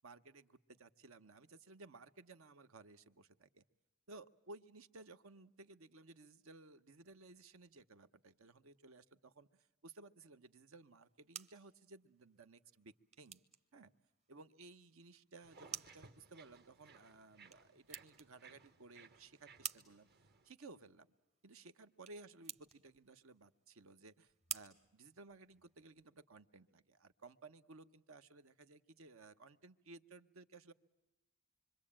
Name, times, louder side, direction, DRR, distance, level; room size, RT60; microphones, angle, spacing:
voice 1, 0.0-3.6 4.1-9.5 9.8-13.4 13.7-13.9 14.3-20.1 20.4-21.1 21.4-30.7, right 3 dB, 70° right, 11 dB, 1.0 m, -58 dB
sound 1, 10.9-25.8, right 7 dB, 30° right, 1.1 m, -53 dB
sound 2, 15.4-20.5, right 4 dB, 50° right, 1.4 m, -62 dB
26.5 x 24.0 x 8.7 m, 1.0 s
head